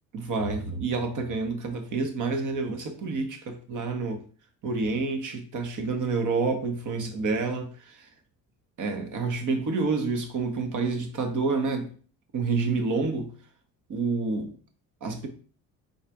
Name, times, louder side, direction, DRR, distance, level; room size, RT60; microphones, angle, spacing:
voice 1, 0.1-4.2 4.6-8.1 8.8-11.9 12.3-13.3 13.9-14.5 15.0-15.3, right 4 dB, 50° right, 1.0 m, -28 dB
4.0 x 2.5 x 4.6 m
cardioid pair, 90°, 38 cm